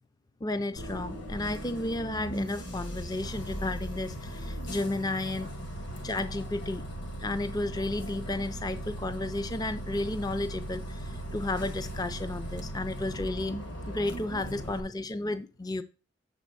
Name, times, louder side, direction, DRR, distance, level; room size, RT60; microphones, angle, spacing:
voice 1, 0.4-5.5 6.0-6.9 7.2-13.6 13.9-15.8, left 2 dB, 20° left, 0.4 m, -33 dB
Bus, 0.8-14.8, right 1 dB, 55° left, 1.5 m, -38 dB
6.7 x 4.3 x 6.5 m
head